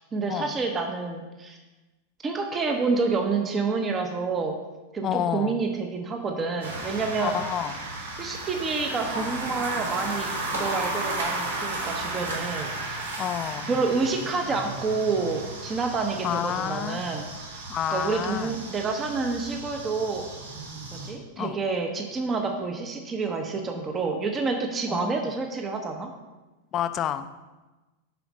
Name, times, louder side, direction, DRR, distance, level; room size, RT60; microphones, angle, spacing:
voice 1, 0.1-1.6 2.2-4.6 4.9-7.4 8.2-10.3 10.5-13.0 13.7-17.3 17.9-20.2 20.9-26.1, right 4 dB, 20° right, 4 dB, 0.9 m, -28 dB
voice 2, 5.0-5.6 7.2-7.8 13.2-13.7 16.2-17.0 17.7-18.5 21.4-21.6 24.9-25.3 26.7-27.3, left 10 dB, 30° left, 11 dB, 0.5 m, -29 dB
sound 1, 6.6-21.1, right 2 dB, 65° right, 1.8 m, -34 dB
7.7 x 5.0 x 5.2 m, 1.1 s
figure-of-eight pair, 90°, 0 cm